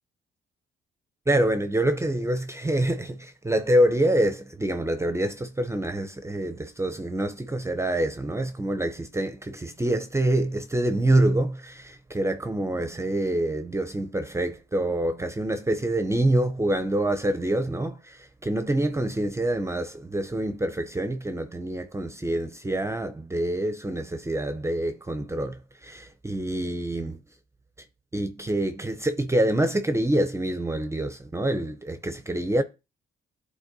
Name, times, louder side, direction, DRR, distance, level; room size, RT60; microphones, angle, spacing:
voice 1, 1.3-27.2 28.1-32.6, right 1 dB, 15° right, 0.6 m, -26 dB
11.5 x 4.1 x 2.6 m
cardioid pair, 90°, 20 cm